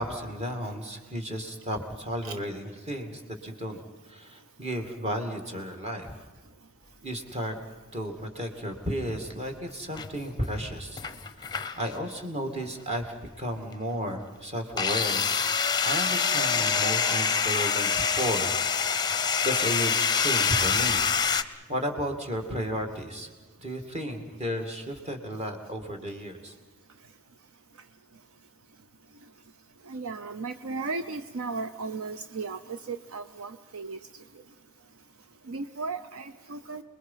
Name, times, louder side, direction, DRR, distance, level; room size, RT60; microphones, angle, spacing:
voice 1, 0.0-3.8 4.1-6.2 7.0-7.5 7.9-11.0 11.4-11.5 11.8-15.3 15.8-19.1 19.4-21.0 21.7-23.3 23.6-26.5, equal, 30° right, 3 dB, 2.4 m, -33 dB
sound 1, 9.9-10.6 11.0-11.9 12.6-12.8 14.8-21.4, left 6 dB, 20° left, 0.7 m, -26 dB
voice 2, 29.9-34.0 35.5-36.8, right 4 dB, 65° right, 10 dB, 0.7 m, -35 dB
29.0 x 21.5 x 5.7 m, 1.3 s
head